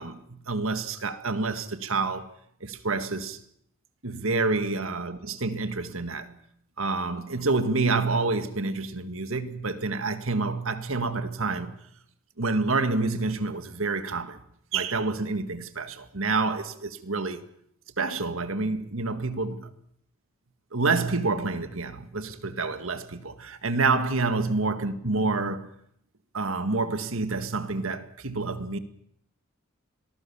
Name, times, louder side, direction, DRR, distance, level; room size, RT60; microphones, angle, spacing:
voice 1, 0.0-2.3 2.6-3.4 4.0-6.4 6.8-11.8 12.4-14.4 14.7-17.4 18.0-19.7 20.7-25.7 26.3-28.8, right 3 dB, 75° right, 1.9 m, -28 dB
26.0 x 19.0 x 7.1 m
head